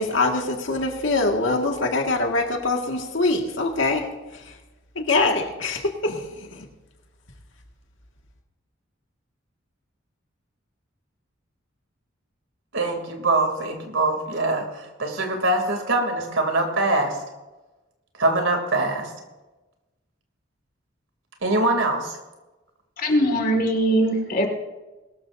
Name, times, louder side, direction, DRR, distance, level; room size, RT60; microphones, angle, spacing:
voice 1, 0.0-4.1 4.5-4.6 5.0-6.7, left 2 dB, 70° left, 2 dB, 1.9 m, -24 dB
voice 2, 12.7-17.2 18.2-19.1 21.4-22.2, right 2 dB, 75° right, 3 dB, 2.9 m, -23 dB
voice 3, 23.0-24.5, right 1 dB, 45° left, 4 dB, 2.1 m, -21 dB
21.5 x 13.0 x 2.7 m, 1.1 s
head